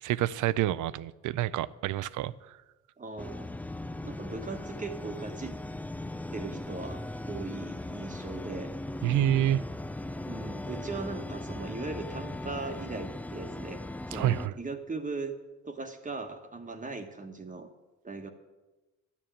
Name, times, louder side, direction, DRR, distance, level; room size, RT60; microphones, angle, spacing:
voice 1, 0.0-2.6 9.0-9.6 14.1-14.5, right 13 dB, 80° right, 0.5 m, -28 dB
voice 2, 3.0-3.5 4.0-5.6 6.3-7.0 7.3-8.7 10.3-15.3 15.6-17.7 18.0-18.3, right 3 dB, 25° right, 1.2 m, -39 dB
sound 1, 3.2-14.5, left 1 dB, 5° left, 0.4 m, -38 dB
12.0 x 7.2 x 8.9 m
cardioid pair, 90°, 30 cm